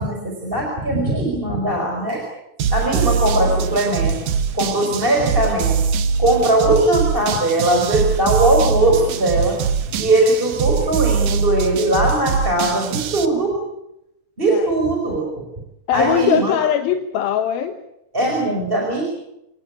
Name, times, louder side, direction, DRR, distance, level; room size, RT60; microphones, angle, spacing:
voice 1, 0.0-2.2 2.7-4.2 4.5-5.8 6.2-9.6 9.9-13.6 14.4-15.5 15.9-16.6 18.1-19.0, right 2 dB, 15° right, 1 dB, 4.9 m, -19 dB
sound 1, 2.6-13.3, right 6 dB, 70° right, 2.9 m, -22 dB
voice 2, 15.9-17.8, left 9 dB, 80° left, 7 dB, 3.0 m, -20 dB
27.5 x 18.5 x 8.4 m, 0.84 s
omnidirectional pair, 4.3 m